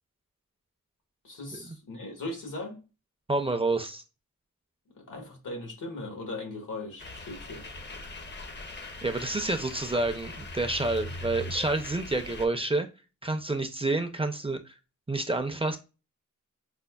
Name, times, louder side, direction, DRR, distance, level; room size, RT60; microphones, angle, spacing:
voice 1, 1.2-2.8 4.9-7.6, left 2 dB, 85° left, 1.2 m, -38 dB
voice 2, 3.3-4.0 9.0-12.9 13.2-14.7 15.1-15.8, right 2 dB, 20° right, 0.4 m, -29 dB
sound 1, 7.0-12.5, left 2 dB, 35° left, 0.5 m, -41 dB
5.1 x 2.1 x 2.2 m
wide cardioid pair, 70°, 31 cm